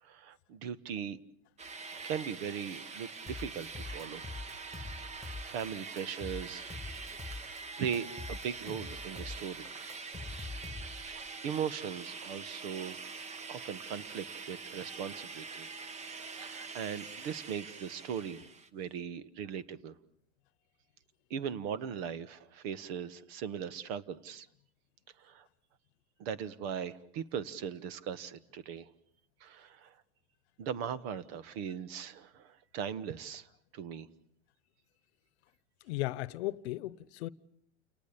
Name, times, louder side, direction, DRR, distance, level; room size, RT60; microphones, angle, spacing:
voice 1, 0.0-1.2 2.0-4.2 5.0-6.7 7.3-9.6 11.1-13.0 13.5-15.7 16.4-18.4 18.7-20.0 21.3-24.5 25.2-25.5 26.2-28.9 29.4-30.0 30.6-33.5 33.7-34.1, right 8 dB, 55° right, 1.6 m, -39 dB
sound 1, 1.6-18.7, right 4 dB, 20° right, 1.1 m, -45 dB
sound 2, 3.3-5.6 6.0-7.6 7.9-11.1, left 3 dB, ahead, 2.7 m, -44 dB
voice 2, 35.9-37.3, left 17 dB, 65° left, 1.0 m, -36 dB
29.5 x 19.0 x 8.5 m
supercardioid pair, 135°, 35 cm